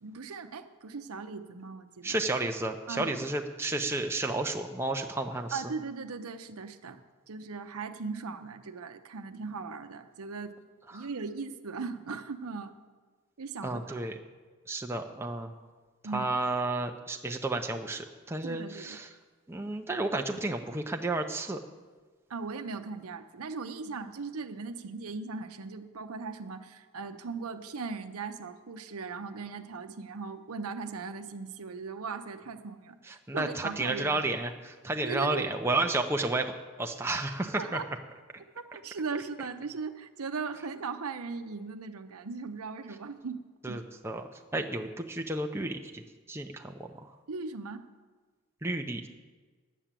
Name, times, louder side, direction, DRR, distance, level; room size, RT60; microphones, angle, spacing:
voice 1, 0.0-2.2 2.9-3.3 5.5-7.0 7.3-10.5 10.9-12.7 13.4-14.0 16.0-16.3 18.4-19.0 22.3-34.2 35.0-35.6 37.6-37.9 38.5-43.8 47.3-47.8, right 4 dB, 80° right, 8 dB, 0.8 m, -38 dB
voice 2, 2.0-5.6 10.9-11.1 13.6-14.1 14.7-15.5 16.1-19.1 19.5-21.6 33.1-36.5 36.8-37.8 43.6-46.7 48.6-49.1, right 2 dB, 10° right, 3 dB, 0.6 m, -32 dB
10.0 x 8.2 x 7.5 m, 1.4 s
head